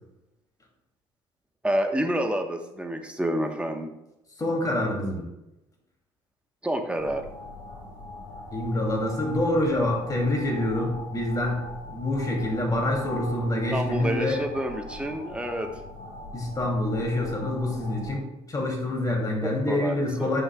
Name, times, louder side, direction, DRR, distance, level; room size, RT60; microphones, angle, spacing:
voice 1, 1.6-3.9 6.6-7.3 13.7-15.7 19.4-20.4, right 1 dB, 10° right, 4 dB, 1.1 m, -28 dB
voice 2, 4.4-5.3 8.5-14.4 16.3-20.4, left 1 dB, 25° left, 0 dB, 2.6 m, -26 dB
sound 1, 7.0-18.2, left 2 dB, 75° left, 2.3 m, -41 dB
9.5 x 5.6 x 2.3 m, 0.89 s
hypercardioid pair, 65°, 14 cm